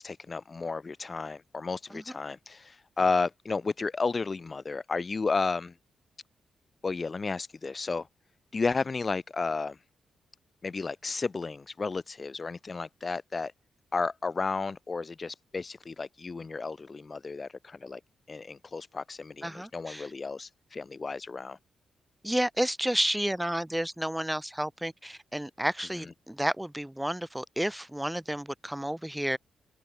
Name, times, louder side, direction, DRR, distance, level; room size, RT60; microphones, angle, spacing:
voice 1, 0.0-5.7 6.8-8.1 8.5-9.8 10.6-13.5 13.9-18.0 18.3-21.6, left 4 dB, 40° left, 0.8 m, -32 dB
voice 2, 19.4-20.1 22.2-29.4, right 1 dB, 5° right, 5.0 m, -31 dB
cardioid pair, 60°, 0 cm